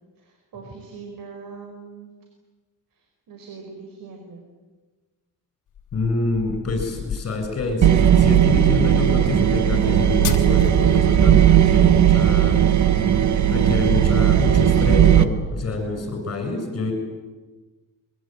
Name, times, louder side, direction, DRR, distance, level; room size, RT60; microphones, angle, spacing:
voice 1, 0.2-2.1 2.9-4.5 15.6-16.0, right 4 dB, 70° right, 3 dB, 5.1 m, -42 dB
sound 1, 5.8-10.9, left 8 dB, 60° left, 2.9 m, -33 dB
voice 2, 5.9-12.7 13.5-16.9, left 3 dB, 45° left, 4 dB, 7.6 m, -26 dB
sound 2, 7.8-15.2, right 10 dB, 55° right, 1.4 m, -16 dB
24.0 x 22.5 x 9.3 m, 1.3 s
cardioid pair, 125°, 35 cm